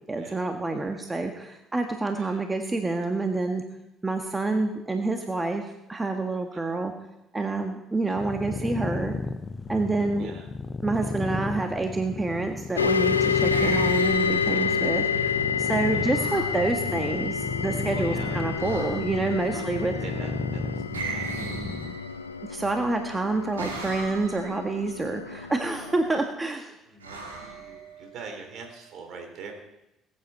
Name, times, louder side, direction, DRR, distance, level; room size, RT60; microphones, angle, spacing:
voice 1, 0.1-3.6 4.0-6.9 7.3-9.1 9.7-10.3 10.8-19.9 22.5-26.7, right 3 dB, 20° right, 4 dB, 1.5 m, -28 dB
sound 1, 8.2-22.0, left 3 dB, 30° left, 0.8 m, -34 dB
voice 2, 10.1-10.5 14.5-14.9 15.1-15.3 15.9-16.2 17.9-18.4 19.5-21.4 23.1-23.2 23.6-23.7 26.8-29.5, right 4 dB, 55° right, 4 dB, 3.3 m, -44 dB
sound 2, 12.8-26.2, left 6 dB, 90° left, 0.5 m, -29 dB
sound 3, 13.2-14.9 16.1-16.6 18.6-19.3 20.9-22.4 23.6-24.6 27.0-28.2, right 4 dB, 85° right, 2.1 m, -38 dB
20.0 x 9.6 x 4.3 m, 0.89 s
figure-of-eight pair, 50°, 0 cm